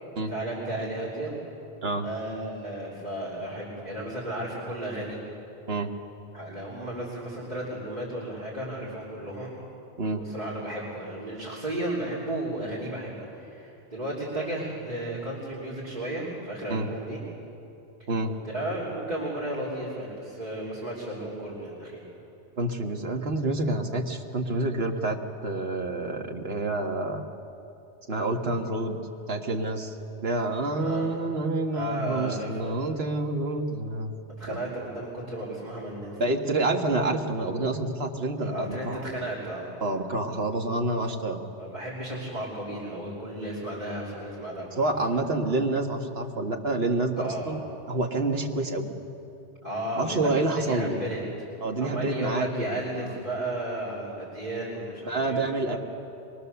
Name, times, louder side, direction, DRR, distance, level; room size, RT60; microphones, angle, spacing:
voice 1, 0.2-1.3 2.0-5.2 6.3-9.5 10.1-17.2 18.0-22.0 30.7-31.1 31.7-32.8 34.4-36.2 38.4-39.7 40.2-40.5 41.6-44.7 47.1-47.5 49.6-50.3 50.5-51.2 51.8-55.8, right 1 dB, 40° right, -7 dB, 3.5 m, -34 dB
voice 2, 22.6-25.2 25.4-27.2 28.1-29.0 29.3-30.0 30.2-34.1 34.5-34.6 36.2-39.0 39.8-41.4 44.8-47.6 47.9-49.0 49.9-51.0 51.6-53.1 55.1-55.8, right 2 dB, 65° right, 3 dB, 1.7 m, -28 dB
23.5 x 21.0 x 6.9 m, 2.8 s
omnidirectional pair, 1.1 m